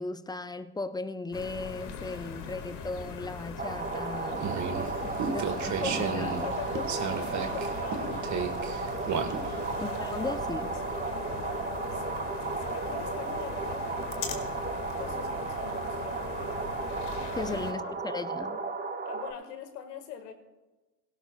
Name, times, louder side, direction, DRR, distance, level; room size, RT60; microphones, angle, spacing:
voice 1, 0.0-4.6 5.0-6.6 9.8-10.8 17.4-18.6, left 3 dB, 10° left, 0.5 m, -37 dB
sound 1, 1.3-17.7, left 6 dB, 55° left, 1.9 m, -40 dB
sound 2, 3.6-19.3, right 4 dB, 20° right, 1.3 m, -34 dB
sound 3, 4.3-9.8, right 6 dB, 35° right, 1.5 m, -34 dB
voice 2, 5.0-5.7 6.1-8.9 9.4-10.0 10.9-16.2 17.4-17.5 17.8-18.0 19.0-20.3, left 8 dB, 80° left, 1.7 m, -44 dB
17.5 x 17.0 x 2.3 m
hypercardioid pair, 75°, 48 cm